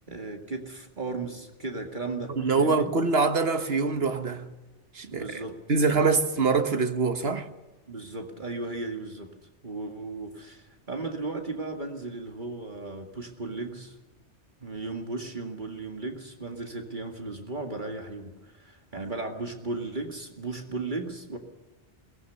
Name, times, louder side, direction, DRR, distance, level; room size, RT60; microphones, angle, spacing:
voice 1, 0.1-2.9 5.0-5.6 7.9-9.3 9.6-14.0 14.6-21.4, right 3 dB, 40° right, 2.3 m, -36 dB
voice 2, 2.4-4.5 4.9-5.4 5.7-7.5, right 4 dB, 55° right, 1.6 m, -24 dB
22.5 x 19.0 x 6.9 m
omnidirectional pair, 1.2 m